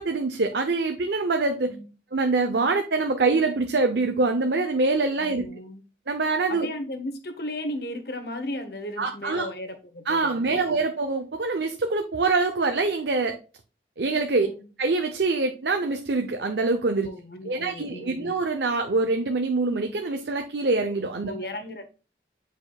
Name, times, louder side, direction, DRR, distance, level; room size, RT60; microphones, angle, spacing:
voice 1, 0.0-1.7 2.1-5.5 6.1-6.7 9.0-9.5 10.1-13.4 14.0-14.5 14.8-17.1 17.4-21.3, right 3 dB, 70° right, 0.7 m, -24 dB
voice 2, 5.2-5.8 6.5-10.8 14.4-14.7 17.0-18.3 21.2-21.9, left 1 dB, 60° left, 1.4 m, -35 dB
8.6 x 5.1 x 2.3 m
head